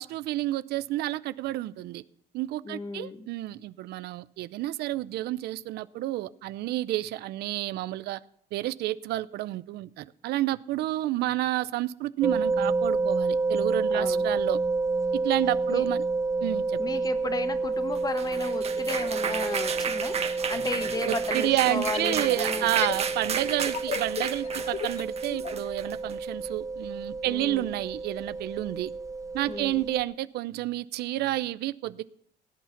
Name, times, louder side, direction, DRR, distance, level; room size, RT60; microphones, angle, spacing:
voice 1, 0.0-2.0 2.3-8.2 8.5-14.6 15.2-16.0 16.4-16.8 21.1-28.9 29.3-32.0, right 15 dB, 75° right, 0.6 m, -30 dB
voice 2, 2.6-3.3 13.9-14.3 15.7-15.9 16.8-22.7 27.2-27.7 29.5-29.9, left 3 dB, 25° left, 1.2 m, -35 dB
sound 1, 12.2-30.0, right 3 dB, 20° right, 0.8 m, -30 dB
sound 2, 18.0-26.2, right 6 dB, 40° right, 1.3 m, -33 dB
sound 3, 20.2-20.3 21.6-25.6, left 9 dB, 40° left, 0.5 m, -37 dB
17.5 x 8.4 x 5.8 m
cardioid pair, 110°, 17 cm